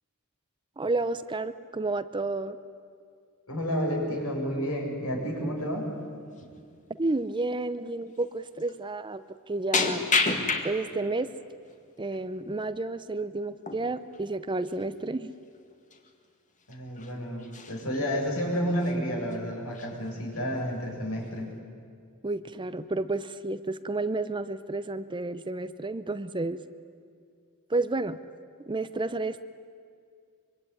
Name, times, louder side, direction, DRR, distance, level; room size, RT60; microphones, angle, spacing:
voice 1, 0.8-2.6 7.0-10.0 10.6-11.3 12.0-15.3 22.2-26.6 27.7-28.2 28.7-29.4, right 2 dB, 20° right, 12 dB, 0.7 m, -31 dB
voice 2, 3.5-5.9 16.7-21.5, equal, 70° left, 0 dB, 7.0 m, -30 dB
sound 1, 5.6-5.9 6.2-6.5 7.0-7.1 8.2-8.3 8.6-8.8 9.7-11.1 11.5-12.2 13.6-13.9 14.1-14.2 14.6-14.8 15.5-15.6 15.9-16.1 16.6-17.1 17.4-18.0 18.5-19.0 19.3-19.4 19.7-20.4 20.8-21.3, left 4 dB, 35° left, 2.1 m, -31 dB
25.0 x 24.0 x 9.8 m, 2.3 s
head